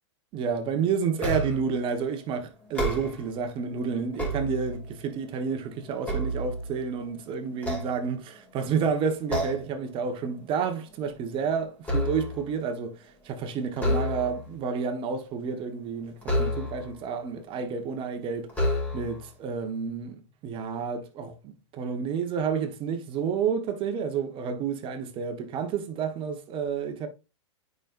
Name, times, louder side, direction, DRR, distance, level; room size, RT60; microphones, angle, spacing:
voice 1, 0.3-18.5 18.9-27.1, right 6 dB, 35° right, 1.2 m, -30 dB
sound 1, 1.2-1.8 2.6-3.4 3.9-5.0 5.5-7.0 7.6-8.5 9.3-9.8 10.2-10.4 10.8-12.5 13.7-14.5 16.2-17.0 17.8-17.9 18.5-19.3, equal, 10° left, 2.6 m, -30 dB
8.9 x 5.3 x 2.5 m
hypercardioid pair, 115°, 15 cm